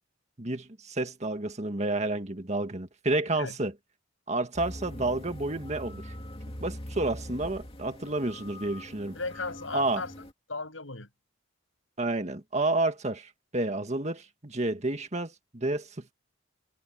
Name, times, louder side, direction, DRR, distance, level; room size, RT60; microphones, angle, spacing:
voice 1, 0.4-3.7 4.3-6.1 6.6-9.2 9.7-10.0 12.0-16.1, right 2 dB, 35° right, 1.8 m, -30 dB
sound 1, 4.5-10.3, left 1 dB, 30° left, 2.6 m, -42 dB
voice 2, 9.1-11.1, left 3 dB, 80° left, 6.5 m, -36 dB
head